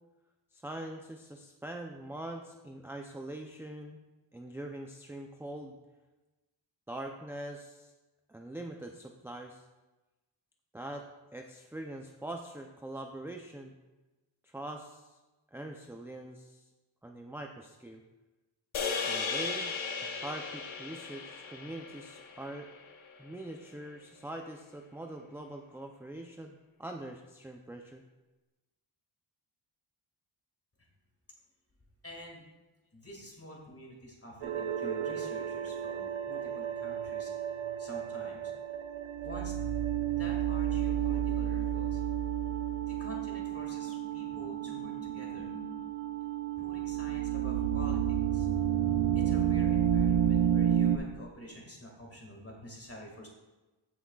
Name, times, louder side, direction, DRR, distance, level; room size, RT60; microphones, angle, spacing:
voice 1, 0.5-4.0 4.3-5.7 6.9-7.9 8.3-9.6 10.7-13.7 14.4-15.2 15.5-16.7 17.0-18.0 19.0-22.7 23.2-28.0, right 1 dB, 5° right, 2 dB, 0.4 m, -43 dB
sound 1, 18.7-23.2, left 5 dB, 85° left, 1.0 m, -36 dB
voice 2, 32.0-32.4 32.9-37.3 37.8-38.5 39.2-39.6 40.1-42.0 42.9-45.5 46.6-48.0 48.3-48.5 49.1-53.3, equal, 30° left, -1 dB, 2.0 m, -47 dB
sound 2, 34.4-51.0, right 10 dB, 80° right, 0.8 m, -31 dB
15.5 x 6.2 x 2.3 m, 1.1 s
wide cardioid pair, 135°, 47 cm